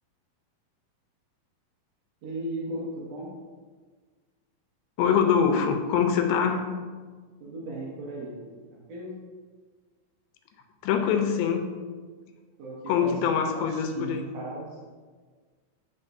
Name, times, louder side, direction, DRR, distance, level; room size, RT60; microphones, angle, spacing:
voice 1, 2.2-3.3 7.4-9.1 12.6-13.4 13.7-14.9, right 2 dB, 65° right, -5 dB, 1.8 m, -37 dB
voice 2, 5.0-6.7 10.8-11.7 12.9-14.3, left 7 dB, 85° left, 5 dB, 2.4 m, -24 dB
10.5 x 3.8 x 2.6 m, 1.5 s
omnidirectional pair, 4.1 m